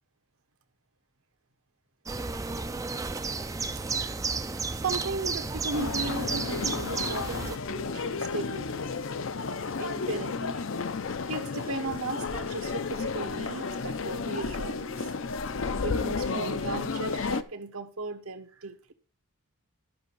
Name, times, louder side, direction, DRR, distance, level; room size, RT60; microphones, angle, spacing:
sound 1, 2.1-7.6, right 4 dB, 15° right, 0.4 m, -32 dB
voice 1, 4.8-8.8 9.8-10.6 11.3-15.1 15.8-18.9, right 3 dB, 70° right, 1.3 m, -36 dB
sound 2, 5.7-17.4, left 4 dB, 60° left, 0.6 m, -32 dB
12.0 x 6.3 x 4.7 m
head